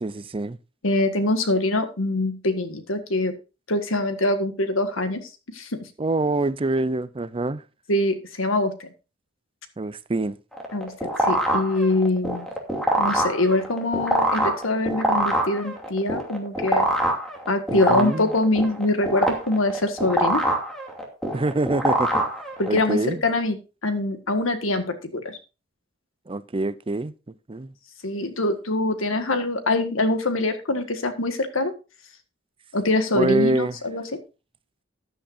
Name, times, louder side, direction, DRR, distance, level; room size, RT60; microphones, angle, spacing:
voice 1, 0.0-0.6 6.0-7.6 9.8-10.4 17.7-18.3 21.3-22.2 22.7-23.2 26.3-27.1 27.5-27.7 33.1-33.8, right 2 dB, 25° right, 0.5 m, -25 dB
voice 2, 0.8-3.3 3.7-5.8 7.9-8.9 10.7-10.9 11.2-12.5 13.0-16.9 17.5-20.4 22.6-23.6 23.8-25.4 28.0-31.7 32.7-34.0, left 2 dB, 90° left, 1.7 m, -24 dB
sound 1, 10.5-22.9, right 1 dB, ahead, 2.6 m, -25 dB
14.0 x 10.0 x 2.6 m
head